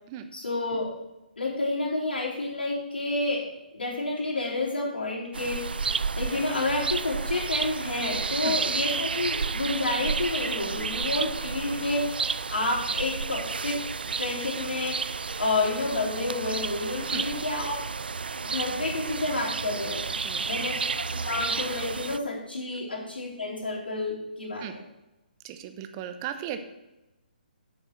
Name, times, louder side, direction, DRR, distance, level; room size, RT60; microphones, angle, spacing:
voice 1, 0.3-0.9 1.4-3.5 3.7-5.7 6.2-12.1 12.5-13.8 14.2-15.1 15.4-17.7 18.4-20.0 20.4-24.7, left 2 dB, 85° left, -5 dB, 3.7 m, -29 dB
sound 1, 5.3-22.2, right 5 dB, 80° right, 0.4 m, -31 dB
voice 2, 20.2-20.7 24.6-24.7 25.4-26.6, right 9 dB, 30° right, 9 dB, 0.9 m, -37 dB
8.8 x 6.8 x 5.9 m, 0.98 s
hypercardioid pair, 145°, 5 cm